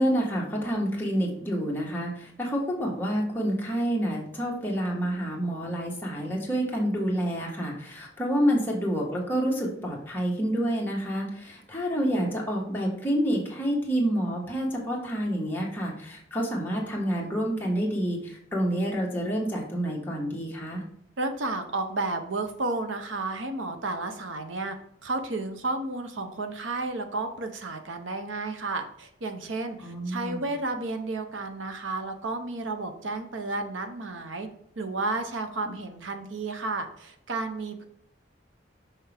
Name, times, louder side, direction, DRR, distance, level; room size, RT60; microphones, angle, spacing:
voice 1, 0.0-20.8 29.8-30.4, equal, 10° left, -3 dB, 1.4 m, -28 dB
voice 2, 21.2-24.8 25.0-34.5 34.8-37.9, right 2 dB, 85° right, 7 dB, 0.9 m, -32 dB
6.0 x 5.7 x 3.4 m, 0.71 s
head